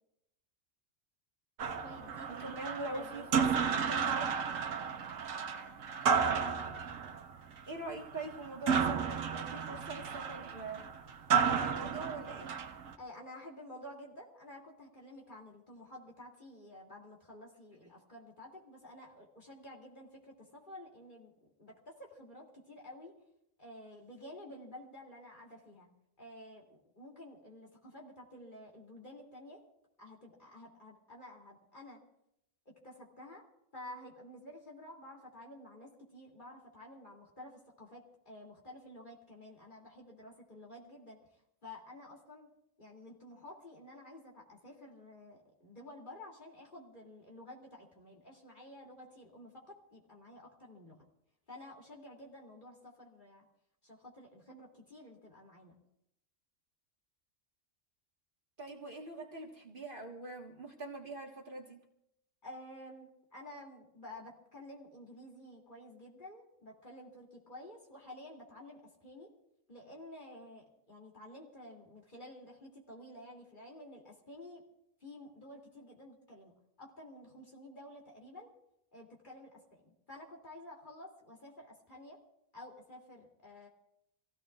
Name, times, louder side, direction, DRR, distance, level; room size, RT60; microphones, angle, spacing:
sound 1, 1.6-12.9, right 6 dB, 85° right, 1.3 m, -33 dB
voice 1, 1.8-2.5 2.8-3.7 13.0-21.3 21.6-23.1 23.6-25.9 26.2-29.6 30.0-32.0 32.7-33.4 33.7-41.2 41.6-42.5 42.8-51.1 51.5-53.5 53.8-55.8 62.4-69.3 69.7-74.6 75.0-76.5 76.8-78.5 78.9-82.2 82.5-83.7, left 1 dB, 40° left, -2 dB, 3.0 m, -51 dB
voice 2, 2.4-3.5 3.9-4.3 7.7-10.9 11.3-12.5 58.6-61.8, right 2 dB, 45° right, 1 dB, 1.6 m, -43 dB
26.5 x 16.0 x 2.4 m, 0.80 s
omnidirectional pair, 1.3 m